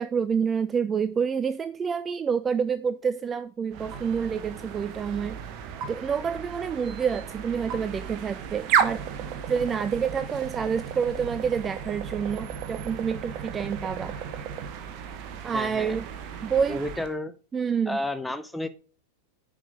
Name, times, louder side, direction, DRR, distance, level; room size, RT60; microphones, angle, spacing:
voice 1, 0.0-5.4 5.9-9.0 9.5-14.1 15.4-16.0 16.4-16.8 17.5-18.0, right 6 dB, 20° right, 0.4 m, -28 dB
sound 1, 3.7-17.1, right 8 dB, 40° right, 1.2 m, -33 dB
voice 2, 15.5-16.0 16.7-17.3 17.9-18.7, left 1 dB, 5° left, 0.9 m, -31 dB
9.9 x 5.1 x 5.2 m
figure-of-eight pair, 90°, 0 cm